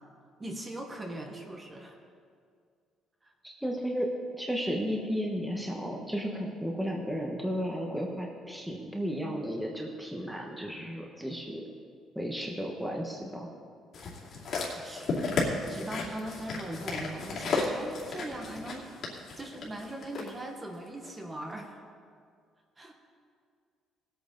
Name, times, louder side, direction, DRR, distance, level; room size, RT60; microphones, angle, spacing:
voice 1, 0.4-1.9 3.2-3.3 14.5-18.9 19.4-21.8 22.8-22.9, right 1 dB, 20° right, 2 dB, 1.3 m, -40 dB
voice 2, 3.4-4.1 4.4-11.6 12.1-13.5, equal, ahead, -1 dB, 1.2 m, -33 dB
sound 1, 13.9-20.3 21.0-21.1, left 3 dB, 50° left, 2.5 m, -34 dB
18.5 x 8.6 x 3.9 m, 2.2 s
cardioid pair, 140°, 0 cm